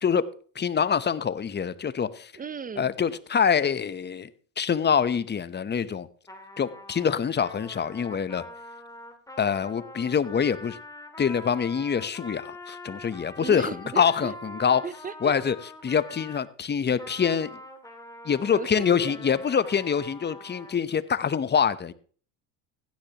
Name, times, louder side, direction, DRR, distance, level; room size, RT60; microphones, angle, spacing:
voice 1, 0.6-2.3 2.8-4.3 4.6-6.1 6.6-8.4 9.4-10.8 11.2-13.7 14.0-14.8 15.2-15.6 15.8-17.5 18.2-21.9, left 7 dB, 20° left, 0.8 m, -25 dB
voice 2, 2.4-2.9 13.4-14.3 14.8-15.3 18.5-19.3, right 6 dB, 20° right, 0.6 m, -36 dB
Trumpet, 6.3-16.5 17.0-20.8, left 1 dB, 5° left, 2.3 m, -44 dB
16.0 x 10.5 x 2.9 m
supercardioid pair, 90°, 46 cm